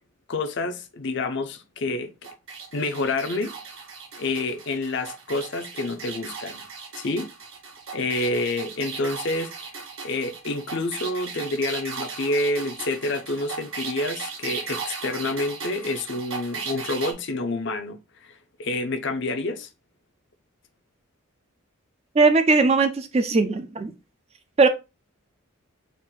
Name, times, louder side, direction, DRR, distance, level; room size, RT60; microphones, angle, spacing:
voice 1, 0.3-2.1 2.7-3.5 4.2-6.6 6.9-7.3 7.9-9.7 10.0-19.7, left 2 dB, 50° left, 0.5 m, -28 dB
sound 1, 2.2-17.1, right 5 dB, 65° right, 1.0 m, -37 dB
voice 2, 22.2-23.9 24.6-24.7, right 3 dB, 30° right, 0.4 m, -19 dB
4.3 x 2.5 x 3.7 m
head